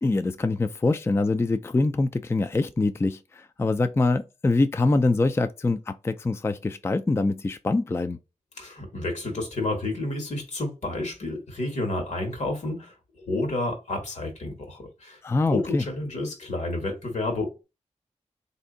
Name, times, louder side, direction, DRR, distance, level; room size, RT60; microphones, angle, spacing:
voice 1, 0.0-8.2 15.2-15.8, left 3 dB, 20° left, 0.3 m, -24 dB
voice 2, 8.6-15.2 15.5-17.6, left 2 dB, 75° left, 1.4 m, -30 dB
3.3 x 2.7 x 3.7 m
wide cardioid pair, 70°, 12 cm